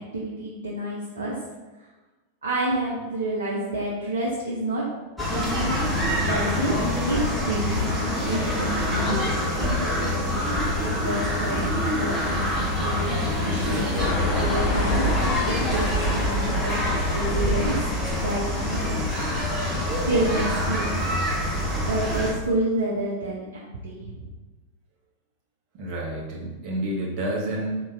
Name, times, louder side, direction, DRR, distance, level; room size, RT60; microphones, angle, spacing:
voice 1, 0.1-1.3 2.4-4.9 6.3-6.7 7.1-9.2 9.6-13.9 14.3-15.0 15.4-16.8 17.1-17.8 18.2-18.9 20.1-21.0 21.9-24.3, right 1 dB, 70° right, -5 dB, 0.7 m, -29 dB
sound 1, 5.2-22.3, left 1 dB, 5° right, 1.1 m, -25 dB
sound 2, 14.0-19.3, left 2 dB, 40° left, 0.6 m, -29 dB
voice 2, 25.7-27.8, right 1 dB, 40° right, -3 dB, 1.1 m, -29 dB
3.7 x 2.9 x 3.9 m, 1.2 s
figure-of-eight pair, 90°, 0 cm